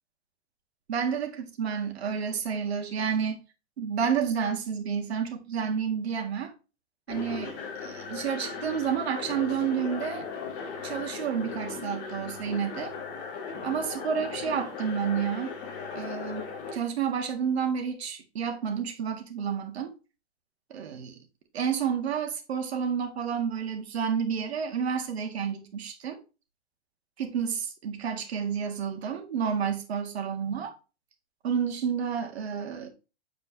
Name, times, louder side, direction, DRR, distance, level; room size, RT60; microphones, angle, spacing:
voice 1, 0.9-3.4 3.8-6.5 7.1-10.3 10.8-12.9 13.6-15.5 15.9-19.9 20.7-21.2 21.5-26.2 27.2-30.7 31.4-32.9, right 7 dB, 65° right, 1.8 m, -30 dB
sound 1, 7.1-16.7, left 5 dB, 15° left, 0.8 m, -37 dB
8.2 x 4.6 x 2.9 m
hypercardioid pair, 180°, 35 cm